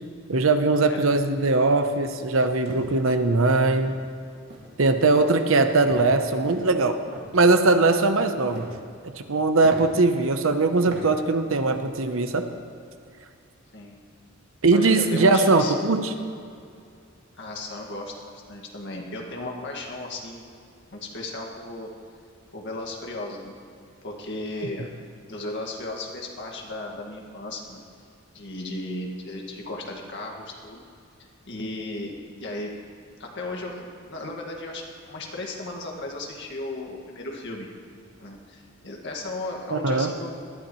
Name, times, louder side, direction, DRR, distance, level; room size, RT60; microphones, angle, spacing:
voice 1, 0.3-4.0 4.8-7.0 7.3-8.7 9.0-12.5 14.6-16.1 39.7-40.1, right 3 dB, 70° right, 8 dB, 0.8 m, -20 dB
sound 1, 2.4-2.9 3.4-3.6 3.8-4.1 4.5-4.8 5.1-5.5 5.9-6.1 6.4-7.3 8.2-8.8 9.2-9.3 9.6-9.8 10.4-10.5 10.9-11.0 11.4-11.8, right 1 dB, 55° right, 2.1 m, -41 dB
voice 2, 14.7-15.7 17.4-20.4 20.9-21.9 22.5-23.5 24.0-24.9 25.3-27.8 28.3-30.8 31.2-32.7 33.2-37.7 38.2-40.3, left 2 dB, 60° left, 0 dB, 1.9 m, -35 dB
19.5 x 12.0 x 3.1 m, 2.4 s
head